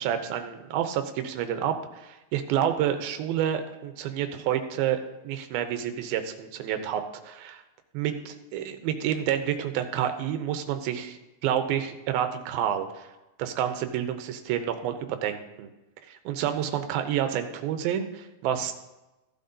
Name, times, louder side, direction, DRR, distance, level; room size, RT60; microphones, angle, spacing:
voice 1, 0.0-5.0 5.2-7.6 7.9-13.1 13.4-15.7 16.1-18.7, right 10 dB, 80° right, 7 dB, 2.6 m, -29 dB
15.5 x 10.5 x 2.7 m, 1.0 s
omnidirectional pair, 4.4 m